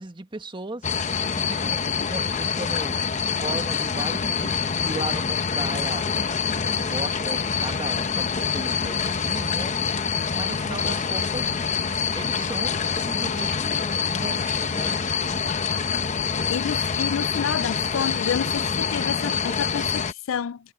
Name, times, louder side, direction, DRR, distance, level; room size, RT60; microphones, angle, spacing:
voice 1, 0.0-3.0 3.3-6.1 6.7-11.5 12.1-14.9, right 2 dB, 25° right, 1.6 m, -36 dB
sound 1, 0.8-20.1, left 6 dB, 40° left, 0.8 m, -26 dB
voice 2, 16.5-20.6, left 7 dB, 90° left, 0.4 m, -29 dB
head